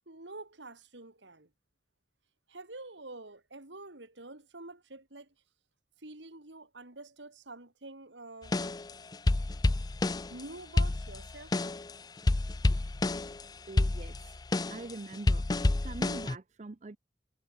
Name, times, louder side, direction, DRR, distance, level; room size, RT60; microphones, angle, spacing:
voice 1, 0.1-1.5 2.5-5.3 6.0-8.6 10.3-11.7, right 2 dB, 80° right, 3.2 m, -47 dB
sound 1, 8.5-10.4 10.8-11.9 12.2-13.4 13.8-16.4, left 2 dB, 20° left, 0.4 m, -29 dB
voice 2, 13.7-14.4 14.7-15.4 15.8-17.0, right 2 dB, 40° right, 0.6 m, -44 dB
head